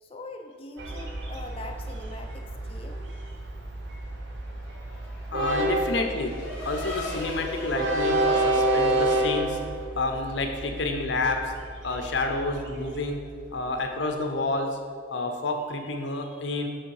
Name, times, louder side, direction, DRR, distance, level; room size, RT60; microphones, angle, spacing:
voice 1, 0.0-3.1, left 2 dB, 30° left, 4 dB, 0.5 m, -42 dB
Train, 0.8-13.8, right 1 dB, 70° right, 0.8 m, -29 dB
Race car auto racing / Accelerating revving vroom, 3.8-9.9, left 3 dB, 5° left, 1.3 m, -39 dB
voice 2, 5.3-6.3 6.6-9.6 10.0-11.5 11.8-13.2 13.5-14.8 15.1-16.7, left 2 dB, 65° left, 4 dB, 0.7 m, -29 dB
8.0 x 3.6 x 4.7 m, 2.1 s
head